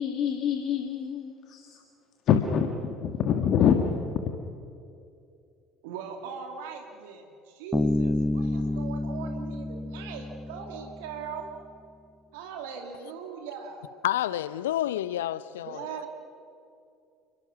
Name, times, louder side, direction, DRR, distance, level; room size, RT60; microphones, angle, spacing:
voice 1, 0.0-1.6 2.3-3.9, left 8 dB, 50° left, 1.8 m, -25 dB
voice 2, 5.8-11.5 12.3-13.9 15.6-16.1, right 6 dB, 70° right, 2.4 m, -40 dB
Bass guitar, 7.7-11.2, left 1 dB, 10° left, 0.5 m, -29 dB
voice 3, 14.0-15.8, left 13 dB, 75° left, 0.7 m, -29 dB
29.0 x 23.0 x 6.1 m
figure-of-eight pair, 60°, 0 cm